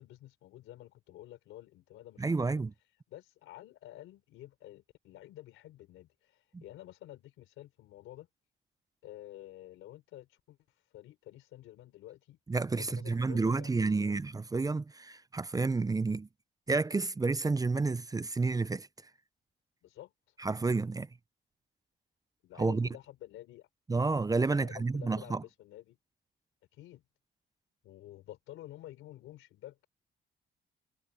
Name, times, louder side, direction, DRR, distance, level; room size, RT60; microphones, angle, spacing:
voice 1, 0.0-2.6 3.1-8.3 9.0-10.6 10.9-12.4 12.7-14.2 19.8-20.1 22.4-23.7 24.5-26.0 26.7-27.0 27.8-29.9, left 14 dB, 90° left, 3.9 m, -50 dB
voice 2, 2.2-2.7 6.5-6.6 12.5-16.3 16.7-18.9 20.4-21.1 22.6-22.9 23.9-25.4, right 3 dB, 20° right, 0.5 m, -30 dB
cardioid pair, 90°, 20 cm